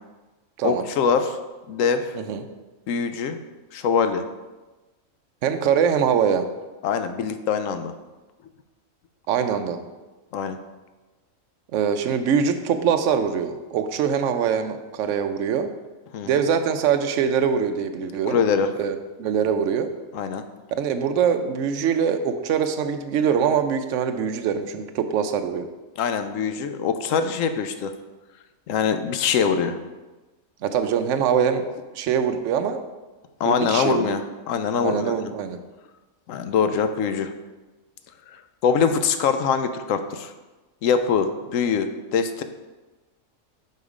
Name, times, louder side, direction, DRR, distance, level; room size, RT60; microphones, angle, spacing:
voice 1, 0.6-1.4 1.7-2.1 2.9-3.4 3.7-4.2 6.8-7.9 10.3-10.6 16.1-16.3 18.3-18.7 20.1-20.4 26.0-27.9 28.7-29.8 33.4-34.2 34.5-35.1 36.3-37.3 38.6-40.3 40.8-42.4, left 6 dB, 70° left, 9 dB, 0.9 m, -23 dB
voice 2, 2.2-2.5 5.4-6.4 9.3-9.8 11.7-15.7 16.3-18.4 18.8-19.9 20.8-25.7 30.6-31.6 31.9-32.8 33.4-34.1 34.8-35.6, right 7 dB, 70° right, 7 dB, 0.9 m, -23 dB
5.7 x 5.3 x 4.9 m, 1.2 s
omnidirectional pair, 1.5 m